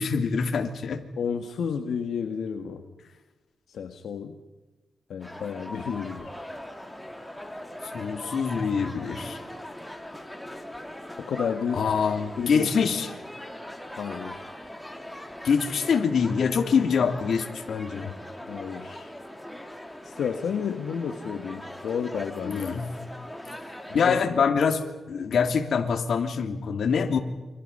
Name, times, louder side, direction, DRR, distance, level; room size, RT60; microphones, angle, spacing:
voice 1, 0.0-1.0 7.9-9.4 11.7-13.1 15.4-18.1 22.4-22.9 23.9-27.2, left 6 dB, 65° left, 5 dB, 3.0 m, -25 dB
voice 2, 1.2-2.8 3.7-4.4 5.1-6.3 11.2-11.8 12.4-12.7 14.0-14.5 18.5-19.1 20.0-22.8 23.9-24.4, left 7 dB, 85° left, 4 dB, 1.8 m, -31 dB
sound 1, 5.2-24.2, left 1 dB, 5° left, 2.9 m, -40 dB
29.5 x 26.0 x 5.6 m, 1.2 s
wide cardioid pair, 115°, 0 cm